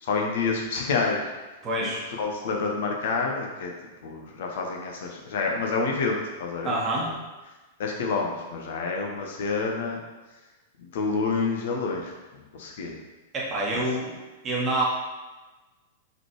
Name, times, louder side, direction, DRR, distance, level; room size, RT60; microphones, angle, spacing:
voice 1, 0.0-1.2 1.8-1.9 2.2-3.7 4.0-6.7 7.0-7.1 7.8-10.0 10.8-13.0 13.7-13.8, left 4 dB, 55° left, 1 dB, 0.6 m, -28 dB
voice 2, 1.6-2.0 6.6-7.1 13.3-14.1 14.4-14.8, right 1 dB, 25° right, -4 dB, 1.1 m, -26 dB
4.0 x 3.2 x 3.0 m, 1.2 s
figure-of-eight pair, 95°, 0 cm